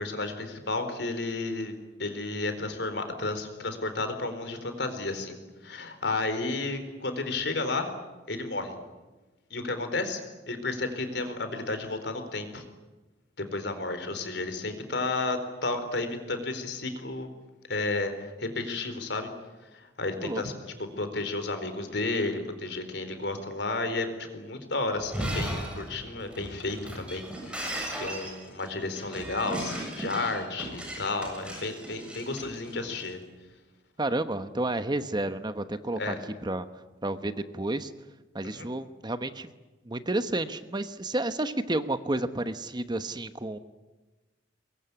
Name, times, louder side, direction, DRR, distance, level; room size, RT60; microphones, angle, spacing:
voice 1, 0.0-1.7 2.0-5.4 5.6-7.9 8.3-8.8 9.5-10.2 10.5-12.6 13.4-17.3 17.7-19.3 19.7-20.5 20.8-33.2 36.0-36.2 38.4-38.7, left 2 dB, 65° left, 8 dB, 4.3 m, -32 dB
Shatter, 25.0-33.0, right 1 dB, 5° right, 7.7 m, -36 dB
voice 2, 34.0-36.2 36.4-36.7 37.0-37.9 38.3-39.5 39.8-43.6, right 2 dB, 25° right, 10 dB, 1.1 m, -31 dB
23.5 x 22.0 x 9.9 m, 1.1 s
head